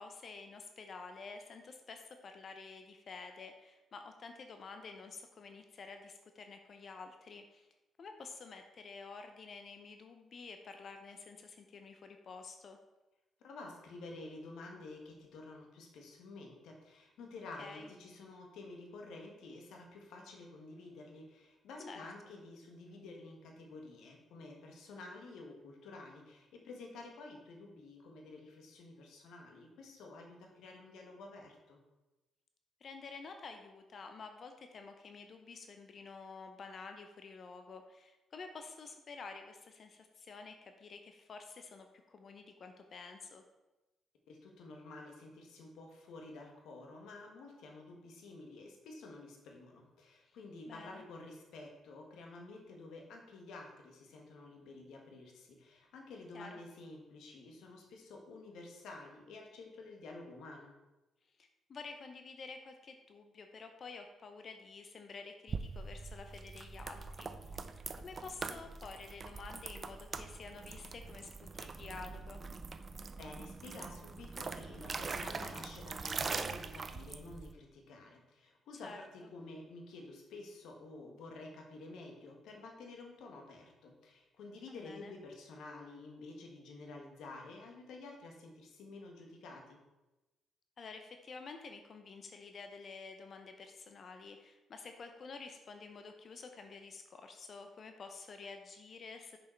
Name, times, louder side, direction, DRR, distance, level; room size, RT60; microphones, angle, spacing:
voice 1, 0.0-7.7 8.0-12.8 17.6-17.9 21.9-22.0 32.8-43.4 50.2-50.4 50.7-51.0 56.3-56.6 61.4-67.3 67.6-72.4 78.8-79.0 84.7-85.1 90.8-99.4, left 4 dB, 50° left, 6 dB, 0.7 m, -50 dB
voice 2, 13.4-31.8 44.3-60.7 73.1-89.8, left 2 dB, 80° left, 1 dB, 1.5 m, -50 dB
sound 1, 65.5-77.5, right 4 dB, 40° right, 0.5 m, -43 dB
6.6 x 5.4 x 4.5 m, 1.0 s
cardioid pair, 90°, 0 cm